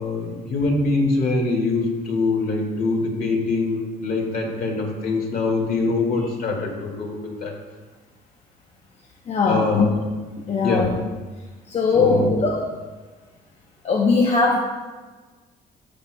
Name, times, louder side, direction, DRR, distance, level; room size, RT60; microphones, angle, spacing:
voice 1, 0.0-7.5 9.5-9.9 10.6-11.0 11.9-12.4, left 3 dB, 55° left, 0 dB, 2.0 m, -23 dB
voice 2, 9.3-9.9 10.4-10.9 11.7-12.6 13.8-14.6, left 4 dB, 40° left, -1 dB, 0.8 m, -20 dB
14.0 x 6.1 x 2.2 m, 1.4 s
cardioid pair, 110°, 17 cm